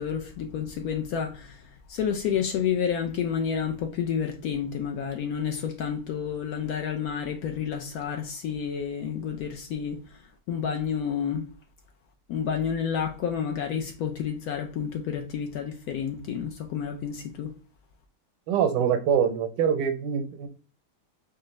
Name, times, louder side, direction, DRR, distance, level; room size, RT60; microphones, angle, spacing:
voice 1, 0.0-1.6 1.9-10.0 10.5-11.5 12.3-17.5, left 7 dB, 70° left, 0.9 m, -30 dB
voice 2, 18.5-20.5, right 8 dB, 85° right, 1.3 m, -24 dB
4.5 x 2.4 x 3.1 m
omnidirectional pair, 1.9 m